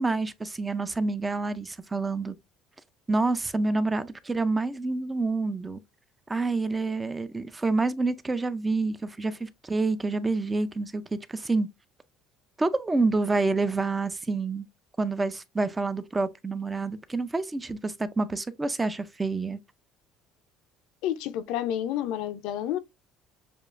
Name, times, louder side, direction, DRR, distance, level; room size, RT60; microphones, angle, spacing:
voice 1, 0.0-2.4 3.1-5.8 6.3-11.7 12.6-14.7 15.0-19.6, right 3 dB, 15° right, 0.4 m, -28 dB
voice 2, 21.0-22.8, left 11 dB, 75° left, 0.5 m, -29 dB
6.7 x 2.4 x 2.4 m
cardioid pair, 150°, 0 cm